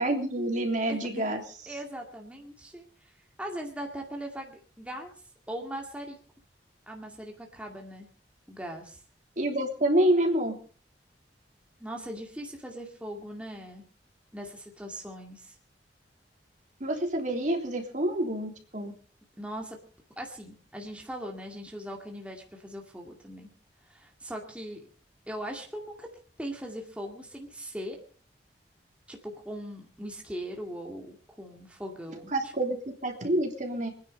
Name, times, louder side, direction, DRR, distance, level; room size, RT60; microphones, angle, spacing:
voice 1, 0.0-1.4 9.4-10.6 16.8-18.9 32.3-33.9, right 1 dB, 45° right, 3 dB, 3.3 m, -27 dB
voice 2, 0.9-1.3 1.7-5.1 5.5-6.2 6.9-8.1 8.5-9.0 11.8-13.8 14.3-15.6 19.4-19.8 20.2-23.5 23.8-24.8 25.3-26.1 26.4-28.0 29.1-32.5, equal, 5° right, 1 dB, 2.1 m, -40 dB
24.5 x 10.0 x 5.4 m, 0.42 s
head